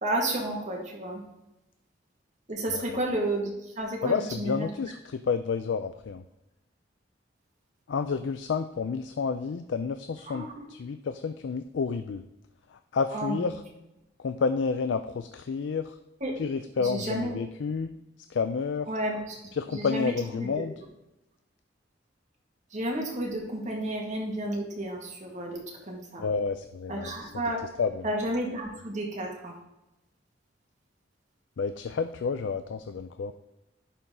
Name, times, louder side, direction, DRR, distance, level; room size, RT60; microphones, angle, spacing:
voice 1, 0.0-1.2 2.5-4.7 10.3-10.7 13.1-13.6 16.2-16.4 16.8-17.3 18.9-19.4 19.7-20.6 22.7-26.2 26.9-27.6 28.0-29.6, right 1 dB, 40° right, -1 dB, 2.0 m, -32 dB
voice 2, 4.0-6.2 7.9-12.2 12.7-13.6 14.2-16.0 16.4-18.0 18.3-18.9 19.5-20.7 26.2-27.4 27.8-28.1 31.6-33.3, left 5 dB, 75° left, 9 dB, 0.4 m, -30 dB
11.0 x 4.1 x 3.8 m, 0.93 s
head